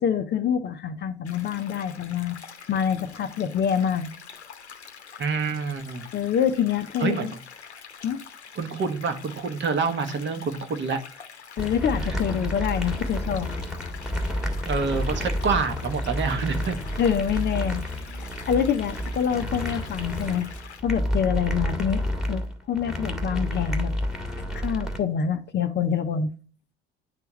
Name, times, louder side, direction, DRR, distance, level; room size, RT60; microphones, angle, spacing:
voice 1, 0.0-2.4 2.7-4.1 6.1-7.3 8.0-8.2 11.6-13.5 17.0-20.5 20.8-23.9 24.5-26.3, left 8 dB, 35° left, 8 dB, 0.6 m, -26 dB
sound 1, 1.2-20.8, left 6 dB, 90° left, 0.8 m, -45 dB
voice 2, 5.2-6.1 7.0-7.4 8.5-11.0 14.7-16.8, right 5 dB, 35° right, 7 dB, 1.0 m, -27 dB
sound 2, 11.6-25.0, equal, ahead, 1.3 m, -30 dB
9.9 x 3.4 x 3.0 m, 0.38 s
figure-of-eight pair, 60°, 33 cm